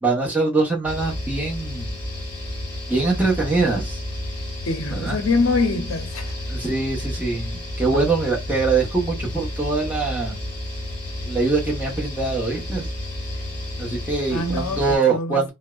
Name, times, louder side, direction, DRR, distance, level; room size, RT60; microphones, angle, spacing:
voice 1, 0.0-1.9 2.9-4.0 4.9-5.2 6.5-10.4 11.2-12.9 13.8-15.5, right 3 dB, 10° right, 0.8 m, -23 dB
sound 1, 0.8-15.0, left 1 dB, 25° left, 1.4 m, -31 dB
voice 2, 4.7-6.3 14.3-15.5, left 3 dB, 85° left, 0.6 m, -24 dB
2.6 x 2.1 x 2.3 m
head